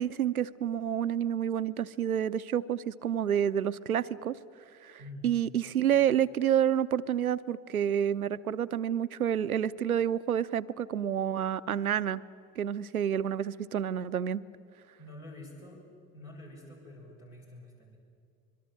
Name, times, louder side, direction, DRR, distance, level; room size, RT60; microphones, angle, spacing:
voice 1, 0.0-4.4 4.8-5.0 5.2-12.2 12.6-14.4, right 9 dB, 90° right, 14 dB, 0.5 m, -29 dB
voice 2, 5.0-5.3 15.0-15.8 16.1-18.0, left 1 dB, 70° left, -2 dB, 6.7 m, -47 dB
24.5 x 22.5 x 7.6 m, 2.3 s
figure-of-eight pair, 60°, 42 cm